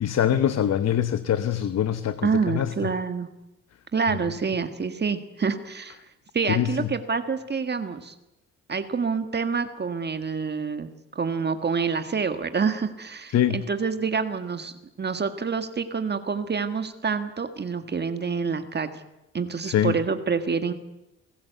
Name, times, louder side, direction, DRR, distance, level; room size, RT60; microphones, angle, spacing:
voice 1, 0.0-2.9 6.5-6.9 13.3-13.6 19.6-19.9, left 10 dB, 60° left, 12 dB, 1.0 m, -24 dB
voice 2, 2.2-3.3 3.9-6.0 6.3-8.1 8.7-18.9 19.3-20.7, right 5 dB, 35° right, 8 dB, 1.7 m, -27 dB
28.5 x 16.5 x 8.2 m, 0.91 s
cardioid pair, 90°, 30 cm